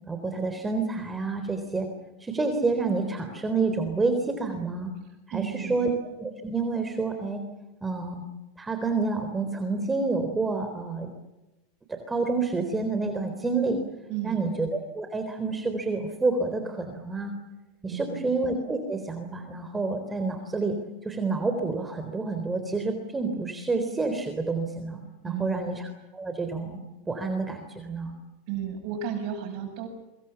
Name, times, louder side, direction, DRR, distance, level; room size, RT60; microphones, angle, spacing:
voice 1, 0.1-1.9 2.2-4.9 5.3-5.9 6.2-7.4 7.8-8.2 8.6-11.1 12.1-13.8 14.2-17.3 17.8-20.7 21.0-26.8 27.1-28.1, right 3 dB, 15° right, 6 dB, 3.8 m, -28 dB
voice 2, 5.3-5.9 14.1-14.5 17.9-18.3 25.2-25.7 28.5-29.9, right 8 dB, 60° right, 4 dB, 7.6 m, -33 dB
27.0 x 24.5 x 7.2 m, 1.0 s
supercardioid pair, 115°, 0 cm